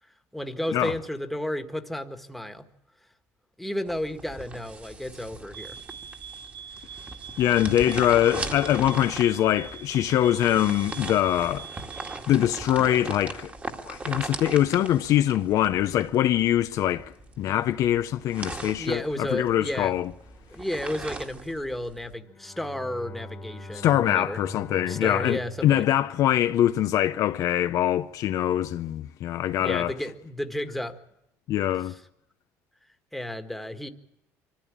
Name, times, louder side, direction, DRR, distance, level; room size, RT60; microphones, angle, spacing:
voice 1, 0.3-2.7 3.6-5.8 18.8-20.0 20.5-24.4 24.9-26.0 29.6-31.0 33.1-33.9, left 1 dB, ahead, 1.7 m, -32 dB
sound 1, 3.9-22.2, right 3 dB, 25° right, 2.0 m, -39 dB
sound 2, 5.5-12.3, right 8 dB, 75° right, 1.1 m, -43 dB
voice 2, 7.4-11.7 12.3-13.5 13.8-20.1 23.7-29.9 31.5-32.0, left 12 dB, 60° left, 0.7 m, -23 dB
Bowed string instrument, 22.0-27.3, left 2 dB, 30° left, 1.8 m, -43 dB
24.5 x 14.5 x 8.8 m
cardioid pair, 110°, 6 cm